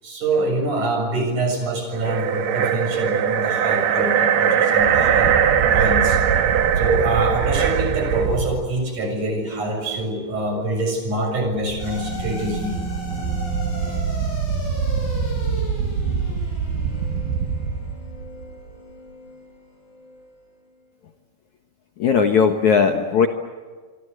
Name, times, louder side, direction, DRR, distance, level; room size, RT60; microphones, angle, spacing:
voice 1, 0.0-5.3 5.7-6.2 6.8-12.8 13.9-14.0, right 2 dB, 40° right, 4 dB, 8.2 m, -25 dB
sound 1, 1.9-8.4, right 8 dB, 90° right, 1.5 m, -20 dB
sound 2, 4.8-8.7 11.5-18.8, right 6 dB, 65° right, 2.9 m, -26 dB
sound 3, 11.8-20.3, equal, 50° left, 9.7 m, -36 dB
voice 2, 22.0-23.3, left 6 dB, 70° left, 6 dB, 1.7 m, -17 dB
27.5 x 24.5 x 8.1 m, 1.5 s
omnidirectional pair, 5.4 m